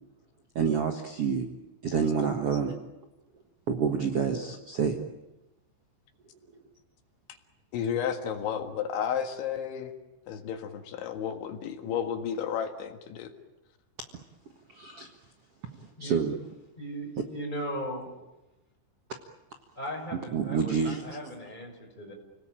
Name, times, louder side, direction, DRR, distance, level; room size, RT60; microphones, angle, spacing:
voice 1, 0.5-1.5 1.8-2.7 3.7-5.0 14.7-15.1 15.8-16.4 20.3-21.0, right 6 dB, 75° right, 5 dB, 1.3 m, -28 dB
voice 2, 7.7-10.0 10.3-13.3, left 8 dB, 80° left, 6 dB, 4.1 m, -32 dB
voice 3, 16.8-18.1 19.8-20.8 21.0-22.1, equal, 10° left, 0 dB, 6.0 m, -37 dB
30.0 x 19.0 x 9.0 m, 0.98 s
omnidirectional pair, 5.3 m